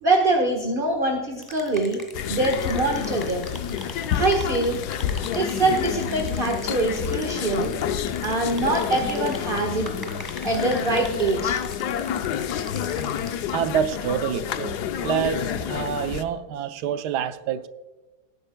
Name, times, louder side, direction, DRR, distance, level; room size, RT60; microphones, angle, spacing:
voice 1, 0.0-2.0 2.3-3.5 4.1-4.8 5.3-7.7 8.2-9.9 10.4-11.6, right 2 dB, 35° right, 1.4 m, -24 dB
sound 1, 1.4-13.7, left 1 dB, 15° left, 1.7 m, -43 dB
sound 2, 2.1-16.2, left 9 dB, 75° left, 1.2 m, -29 dB
voice 2, 12.9-14.8 15.0-17.7, right 9 dB, 75° right, 1.3 m, -27 dB
18.5 x 9.7 x 2.2 m
omnidirectional pair, 1.8 m